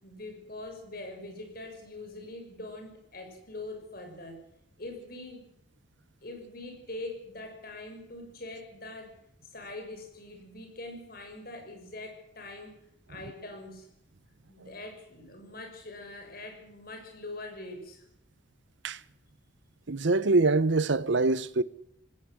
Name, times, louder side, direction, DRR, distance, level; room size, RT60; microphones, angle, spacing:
voice 1, 0.0-4.4 4.8-5.4 6.2-9.2 9.5-12.7 13.1-13.9 14.5-18.0, left 2 dB, 50° left, 6.2 m, -43 dB
voice 2, 19.9-21.6, right 3 dB, 65° right, 0.8 m, -24 dB
19.5 x 17.5 x 7.8 m
head